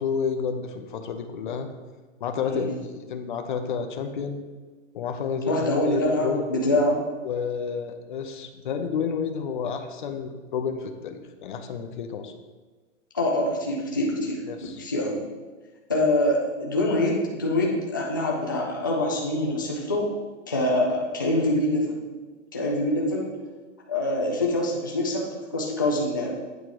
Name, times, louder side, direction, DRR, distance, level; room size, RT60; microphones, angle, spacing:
voice 1, 0.0-1.7 2.2-4.4 4.9-6.5 7.2-12.3 14.5-14.8, left 6 dB, 40° left, 6 dB, 0.7 m, -30 dB
voice 2, 5.5-7.1 13.1-14.4 14.8-15.2 15.9-20.1 20.5-21.9 22.5-23.3 23.9-25.3 25.5-26.3, left 1 dB, 20° left, -2 dB, 0.3 m, -25 dB
8.2 x 4.6 x 4.9 m, 1.3 s
hypercardioid pair, 170°, 37 cm